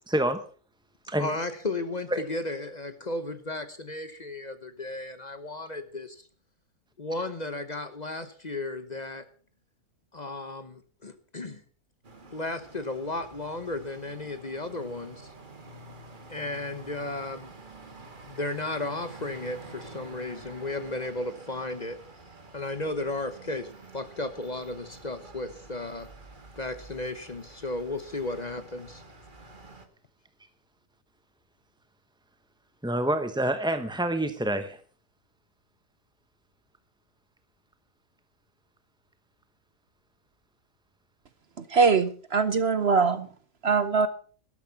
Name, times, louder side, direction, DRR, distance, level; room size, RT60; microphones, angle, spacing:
voice 1, 0.1-0.4 1.1-1.3 2.1-2.2 32.8-34.8, right 1 dB, 5° right, 9 dB, 0.5 m, -27 dB
voice 2, 1.2-6.3 7.0-9.3 10.1-11.6 12.3-15.3 16.3-17.5 18.2-22.0 22.5-26.1 26.6-29.0, left 2 dB, 30° left, 10 dB, 1.0 m, -34 dB
sound 1, 12.0-29.9, right 2 dB, 35° right, 1.8 m, -48 dB
voice 3, 41.6-43.3 43.6-44.1, right 5 dB, 50° right, 13 dB, 0.9 m, -22 dB
12.5 x 12.5 x 5.8 m, 0.43 s
omnidirectional pair, 1.6 m